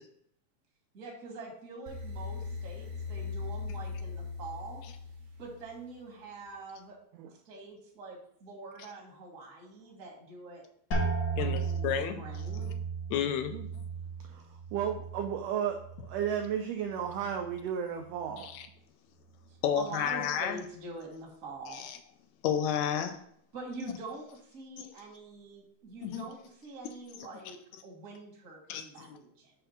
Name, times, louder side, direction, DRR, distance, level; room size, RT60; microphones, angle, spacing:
voice 1, 0.9-4.8 5.4-7.0 7.3-10.6 11.3-12.7 19.5-21.8 23.5-29.5, right 3 dB, 45° right, 1.1 m, -45 dB
sound 1, 1.9-5.9, left 4 dB, 70° right, 1.6 m, -39 dB
sound 2, 10.9-16.5 16.9-17.6 18.1-18.5, right 4 dB, 50° left, 1.4 m, -36 dB
voice 2, 11.4-12.2 13.1-13.6 18.4-18.7 19.6-20.6 21.7-22.0 22.4-23.2 24.8-24.9 26.0-26.2 27.2-27.3 28.7-29.2, left 8 dB, 80° left, 1.7 m, -31 dB
voice 3, 14.7-15.8 16.1-18.5, right 8 dB, 90° right, 1.4 m, -33 dB
5.8 x 3.4 x 5.5 m
omnidirectional pair, 3.5 m